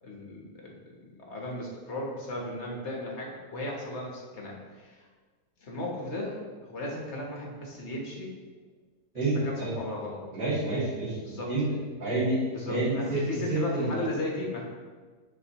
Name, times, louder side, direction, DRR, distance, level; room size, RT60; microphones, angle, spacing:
voice 1, 0.0-5.0 5.6-8.3 9.1-10.2 11.2-11.5 12.5-14.6, left 1 dB, 45° left, -2 dB, 1.3 m, -36 dB
voice 2, 9.1-9.7 10.3-11.7 12.0-12.4 12.7-13.2 13.5-13.9, right 2 dB, 85° right, -11 dB, 3.1 m, -28 dB
7.8 x 6.0 x 3.0 m, 1.5 s
omnidirectional pair, 1.8 m